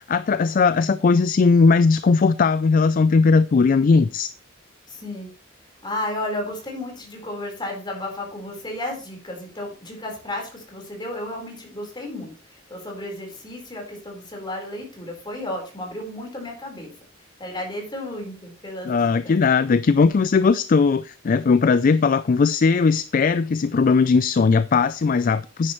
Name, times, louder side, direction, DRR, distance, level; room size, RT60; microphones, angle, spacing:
voice 1, 0.1-4.3 18.9-25.7, left 4 dB, 45° left, 0.4 m, -18 dB
voice 2, 4.9-5.3 5.8-16.9 17.4-19.3 21.9-22.1, left 1 dB, 25° left, 4.3 m, -33 dB
10.0 x 9.8 x 3.1 m
head